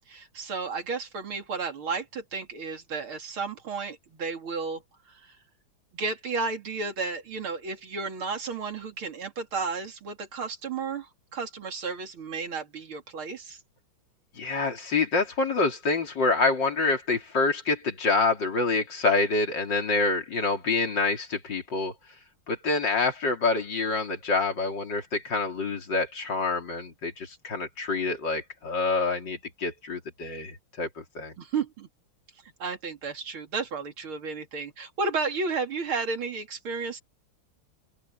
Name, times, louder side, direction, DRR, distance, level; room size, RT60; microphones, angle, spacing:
voice 1, 0.1-4.8 5.1-5.3 5.9-13.6 31.4-31.9 32.6-37.0, right 4 dB, 85° right, 3.5 m, -33 dB
voice 2, 14.4-21.9 22.5-31.3, left 3 dB, 60° left, 3.6 m, -27 dB
omnidirectional pair, 2.2 m